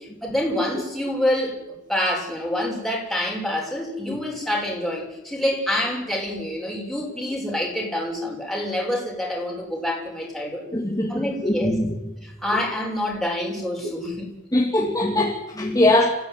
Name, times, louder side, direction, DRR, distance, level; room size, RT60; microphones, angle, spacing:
voice 1, 0.2-1.5 1.9-10.6 11.1-11.7 12.2-14.3, left 1 dB, ahead, -1 dB, 6.8 m, -26 dB
voice 2, 10.7-12.0 13.8-13.9 14.5-16.2, left 1 dB, 15° left, 0 dB, 2.7 m, -22 dB
29.5 x 15.5 x 9.7 m, 1.0 s
head